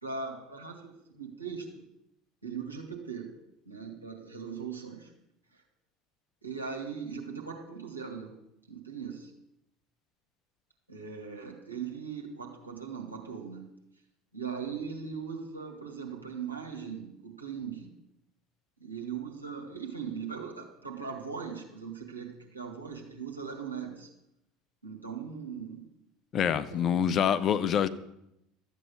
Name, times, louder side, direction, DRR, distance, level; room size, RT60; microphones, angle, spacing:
voice 1, 0.0-1.9 2.4-3.3 3.7-5.1 5.5-5.6 6.4-8.3 8.7-9.3 10.9-13.7 14.3-17.9 18.8-24.1 24.8-25.9 26.7-27.0, right 6 dB, 90° right, -1 dB, 2.1 m, -39 dB
voice 2, 26.3-27.9, left 8 dB, 40° left, 12 dB, 0.8 m, -26 dB
13.0 x 8.4 x 6.5 m, 0.82 s
figure-of-eight pair, 70°, 0 cm